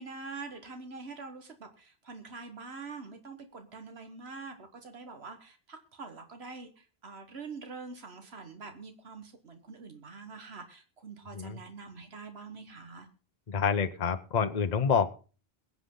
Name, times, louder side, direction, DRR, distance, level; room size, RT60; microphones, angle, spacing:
voice 1, 0.0-13.1, right 4 dB, 80° right, 6 dB, 1.7 m, -45 dB
voice 2, 13.5-15.1, left 6 dB, 45° left, 9 dB, 0.9 m, -27 dB
22.5 x 8.3 x 3.8 m, 0.36 s
omnidirectional pair, 1.1 m